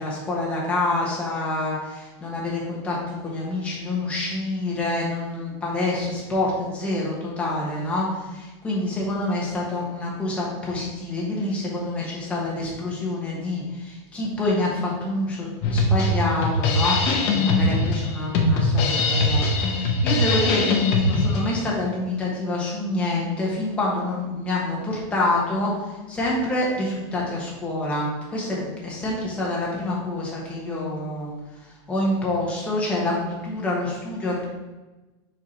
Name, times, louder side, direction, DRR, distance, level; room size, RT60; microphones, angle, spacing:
voice 1, 0.0-31.3 31.9-34.4, left 2 dB, 10° left, -5 dB, 1.2 m, -27 dB
Drum kit, 15.6-21.6, left 2 dB, 40° left, 0.8 m, -21 dB
4.7 x 4.4 x 5.1 m, 1.1 s
supercardioid pair, 180°, 14 cm